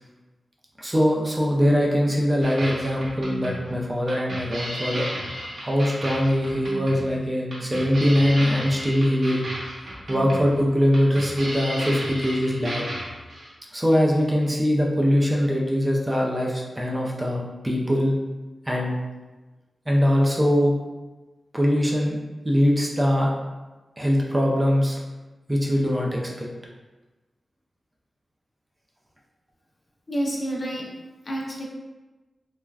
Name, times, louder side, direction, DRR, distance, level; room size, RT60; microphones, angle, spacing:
voice 1, 0.8-5.1 5.4-9.4 9.8-12.8 13.7-18.2 18.7-19.0 19.9-20.8 21.5-22.2 22.4-23.3 24.0-25.0 25.5-26.5, equal, 20° right, -2 dB, 0.4 m, -22 dB
sound 1, 2.4-13.5, equal, 60° right, 0.8 m, -34 dB
voice 2, 30.1-30.9 31.3-31.7, right 1 dB, 40° left, -3 dB, 0.6 m, -28 dB
3.3 x 2.2 x 2.3 m, 1.2 s
wide cardioid pair, 85°, 0 cm